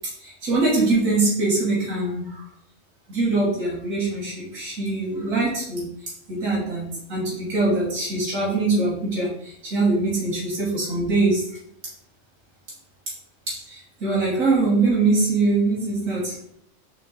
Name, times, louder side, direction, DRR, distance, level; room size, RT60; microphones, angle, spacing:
voice 1, 0.2-2.4 3.1-5.9 6.3-11.4 13.5-16.4, right 3 dB, 90° right, -5 dB, 1.7 m, -23 dB
3.8 x 3.3 x 3.7 m, 0.69 s
omnidirectional pair, 1.4 m